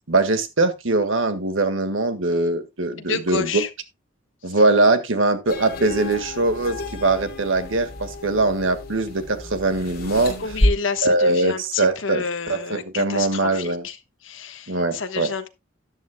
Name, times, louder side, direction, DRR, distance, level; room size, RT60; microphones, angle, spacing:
voice 1, 0.1-3.6 4.4-10.4 11.0-13.8 14.7-15.3, right 2 dB, 80° right, 1.6 m, -22 dB
voice 2, 3.0-3.7 4.5-4.6 10.4-14.0 14.2-15.5, left 5 dB, 80° left, 1.2 m, -29 dB
sound 1, 5.5-10.7, left 1 dB, 50° left, 3.0 m, -29 dB
13.0 x 10.5 x 2.2 m
head